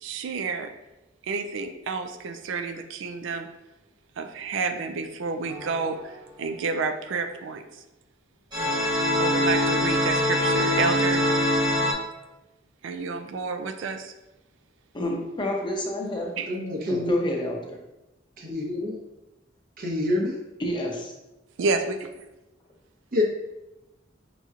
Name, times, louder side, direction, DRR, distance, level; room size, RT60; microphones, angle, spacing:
voice 1, 0.0-0.7 1.3-3.5 4.2-6.1 6.4-7.8 9.2-11.2 12.8-14.1 16.4-16.5 21.6-22.3, right 4 dB, 80° right, 6 dB, 0.4 m, -29 dB
sound 1, 5.5-6.0 8.5-11.9, left 1 dB, 25° right, 1.2 m, -23 dB
voice 2, 14.9-16.4 16.9-17.8 20.6-21.1, left 1 dB, 25° left, 0 dB, 0.6 m, -29 dB
voice 3, 16.5-17.2 18.4-19.0 19.8-20.4 23.1-23.2, left 1 dB, 50° right, -1 dB, 0.8 m, -26 dB
5.3 x 3.0 x 2.4 m, 0.97 s
head